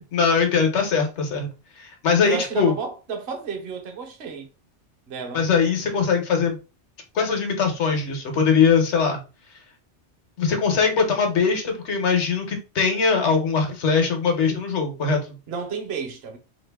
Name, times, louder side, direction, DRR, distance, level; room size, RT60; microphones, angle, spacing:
voice 1, 0.1-1.5 1.8-2.7 5.3-6.6 7.1-9.2 10.4-15.4, left 5 dB, 70° left, 1.2 m, -21 dB
voice 2, 2.2-4.5 5.1-5.5 15.5-16.4, right 5 dB, 60° right, 1.0 m, -32 dB
2.9 x 2.5 x 3.4 m
omnidirectional pair, 1.2 m